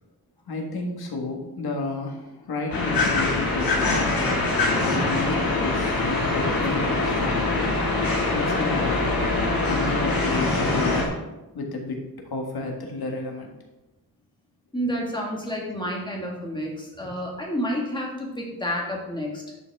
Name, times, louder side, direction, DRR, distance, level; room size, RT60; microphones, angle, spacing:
voice 1, 0.5-7.6 8.3-9.2 9.6-11.2 11.5-13.5, left 2 dB, 85° left, 2 dB, 1.6 m, -32 dB
sound 1, 2.7-11.1, left 2 dB, 70° left, 2.2 m, -23 dB
voice 2, 14.7-19.4, equal, 10° left, -2 dB, 1.8 m, -30 dB
10.5 x 5.7 x 3.5 m, 0.99 s
wide cardioid pair, 165°, 37 cm